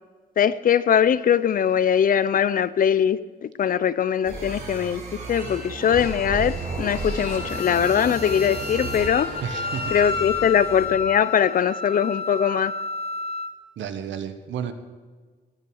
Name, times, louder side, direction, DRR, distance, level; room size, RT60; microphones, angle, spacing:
voice 1, 0.4-5.0 5.3-9.3 9.9-12.7, left 8 dB, 45° left, 17 dB, 0.6 m, -21 dB
sound 1, 4.2-11.0, right 3 dB, 40° right, 5.5 m, -34 dB
Wind instrument woodwind instrument, 5.3-13.5, left 4 dB, 30° left, 1.2 m, -32 dB
voice 2, 9.4-10.0 13.8-14.7, right 8 dB, 75° right, 9 dB, 1.4 m, -31 dB
17.0 x 9.4 x 6.5 m, 1.5 s
cardioid pair, 120°, 20 cm